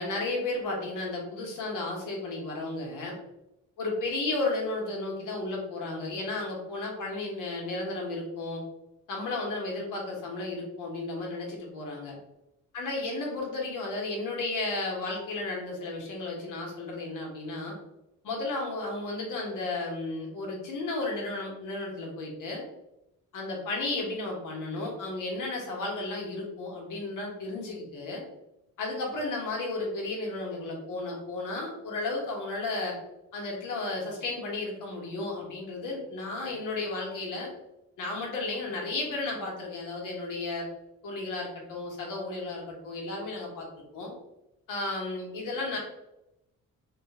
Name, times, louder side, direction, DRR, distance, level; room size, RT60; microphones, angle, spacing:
voice 1, 0.0-3.2 3.8-8.6 9.1-12.2 12.7-17.7 18.2-22.6 23.3-28.2 28.8-33.0 33.3-37.5 38.0-40.7 41.0-43.7 43.9-44.1 44.7-45.8, left 2 dB, 75° left, -2 dB, 1.4 m, -33 dB
3.2 x 2.5 x 4.1 m, 0.89 s
cardioid pair, 150°, 31 cm